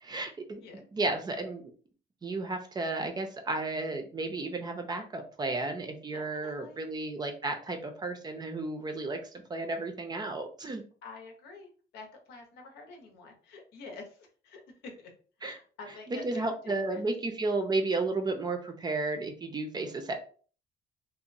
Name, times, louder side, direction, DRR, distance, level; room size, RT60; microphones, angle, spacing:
voice 1, 0.0-0.6 0.9-1.7 2.2-9.2 9.5-10.8 15.4-15.6 16.1-20.2, right 3 dB, 25° right, 6 dB, 0.5 m, -33 dB
voice 2, 6.1-6.8 11.0-14.6 15.0-15.1 15.4-17.0, left 3 dB, 80° left, 2 dB, 0.8 m, -48 dB
2.9 x 2.1 x 2.5 m, 0.42 s
cardioid pair, 110°, 17 cm